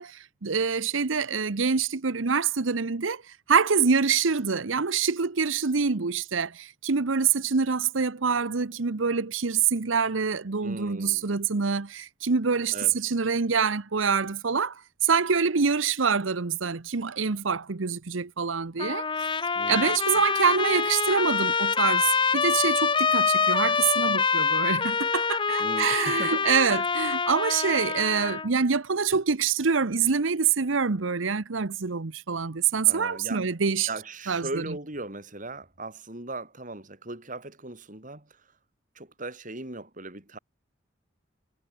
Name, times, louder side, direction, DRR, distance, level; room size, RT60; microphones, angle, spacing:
voice 1, 0.0-3.2 3.5-19.1 19.7-33.9 34.3-34.7, right 5 dB, 85° right, 0.9 m, -25 dB
voice 2, 10.6-11.2 12.7-12.9 19.6-20.0 25.6-26.4 32.9-33.5 33.9-38.3 39.0-40.4, right 2 dB, 40° right, 4.1 m, -38 dB
Trumpet, 18.8-28.5, left 5 dB, 25° left, 1.0 m, -25 dB
head